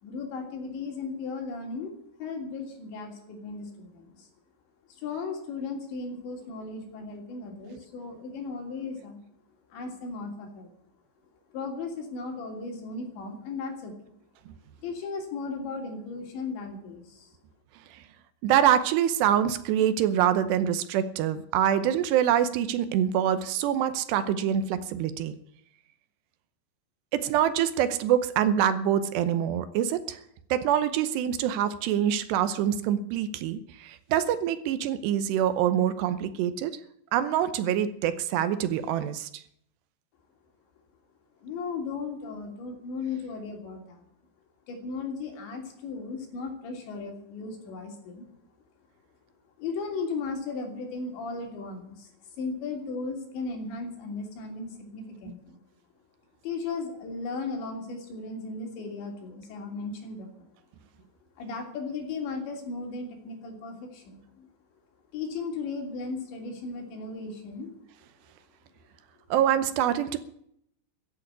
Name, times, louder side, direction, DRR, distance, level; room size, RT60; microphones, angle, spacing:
voice 1, 0.0-1.9 2.2-4.3 4.9-9.2 9.7-10.7 11.5-13.9 14.8-17.3 41.4-44.1 44.7-48.3 49.6-55.6 56.4-60.5 61.4-64.5 65.1-67.7, left 4 dB, 75° left, 2 dB, 5.3 m, -36 dB
voice 2, 18.4-25.3 27.1-30.2 30.5-36.8 37.1-39.3 69.3-70.2, right 10 dB, 80° right, 13 dB, 2.9 m, -25 dB
15.0 x 8.4 x 9.8 m, 0.71 s
omnidirectional pair, 5.1 m